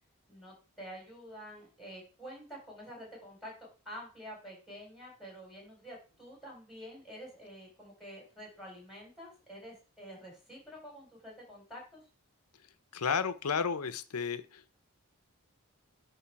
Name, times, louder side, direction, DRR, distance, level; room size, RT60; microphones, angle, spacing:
voice 1, 0.3-12.0, equal, ahead, -2 dB, 4.2 m, -48 dB
voice 2, 12.9-14.8, left 6 dB, 85° left, 13 dB, 0.7 m, -33 dB
9.8 x 3.4 x 4.7 m, 0.35 s
head